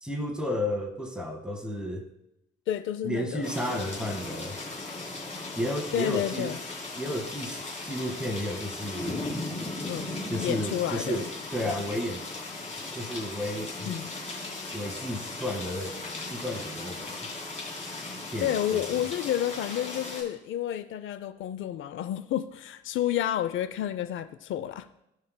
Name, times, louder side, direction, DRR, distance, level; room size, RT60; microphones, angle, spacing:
voice 1, 0.0-2.1 3.0-4.6 5.6-6.6 7.0-9.2 10.3-12.2 12.9-14.0 14.7-16.0 16.3-17.3 18.3-19.1, equal, 5° right, 1.7 m, -33 dB
voice 2, 2.7-3.5 5.9-6.6 9.8-10.1 10.4-11.3 11.6-11.7 13.9-14.1 18.4-24.9, left 11 dB, 80° left, 0.5 m, -30 dB
sound 1, 3.4-20.2, left 2 dB, 35° left, 3.4 m, -37 dB
16.5 x 5.6 x 2.2 m
cardioid pair, 90°, 20 cm